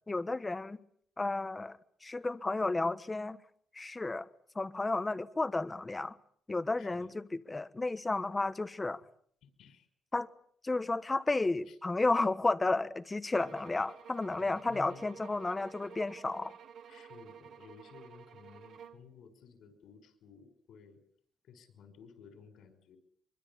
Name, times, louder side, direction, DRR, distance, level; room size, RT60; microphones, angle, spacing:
voice 1, 0.1-0.8 1.2-3.4 3.7-4.3 4.5-6.2 6.5-9.0 10.1-10.3 10.6-16.5, left 2 dB, 15° left, 1.2 m, -32 dB
voice 2, 6.8-7.1 9.4-9.9 11.7-11.8 14.4-15.3 16.9-21.0 21.4-23.0, left 6 dB, 75° left, 5.6 m, -55 dB
sound 1, 13.3-19.1, right 8 dB, 65° right, 1.4 m, -52 dB
24.5 x 24.0 x 7.2 m
cardioid pair, 160°, 0 cm